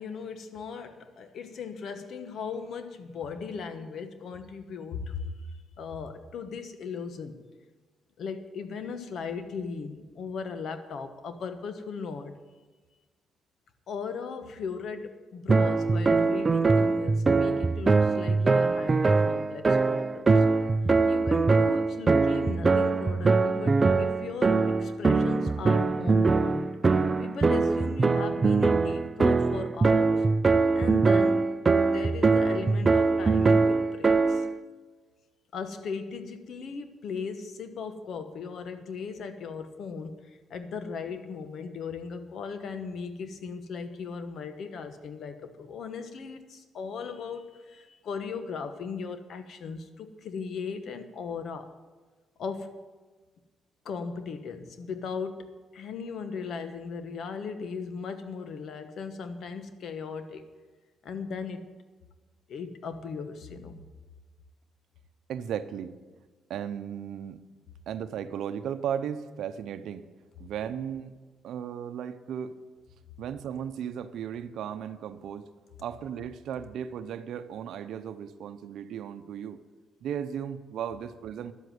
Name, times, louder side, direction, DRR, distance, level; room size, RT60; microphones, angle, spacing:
voice 1, 0.0-5.3 5.8-7.4 8.2-12.4 13.9-20.4 21.1-30.2 30.7-31.5 31.8-34.5 35.5-51.7 52.4-52.8 53.8-60.5 61.0-61.7 62.5-63.8, left 5 dB, 65° left, 9 dB, 1.2 m, -38 dB
sound 1, 15.5-34.6, right 4 dB, 30° right, 0.5 m, -23 dB
voice 2, 65.3-65.9 66.5-67.4 67.9-70.1 70.4-71.1 71.4-72.5 73.2-75.5 75.8-79.6 80.0-81.5, right 8 dB, 75° right, 10 dB, 0.7 m, -35 dB
11.5 x 8.1 x 7.9 m, 1.3 s
cardioid pair, 90°, 0 cm